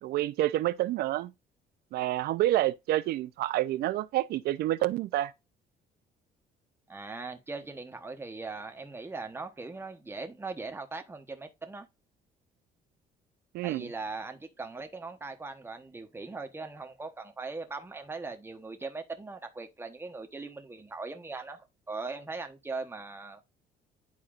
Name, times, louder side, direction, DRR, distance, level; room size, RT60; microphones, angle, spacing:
voice 1, 0.0-1.3 1.9-5.3 13.5-13.9, right 14 dB, 70° right, 0.4 m, -28 dB
voice 2, 6.9-11.9 13.6-23.5, right 3 dB, 15° right, 1.0 m, -40 dB
10.5 x 4.2 x 2.4 m
cardioid pair, 110°, 17 cm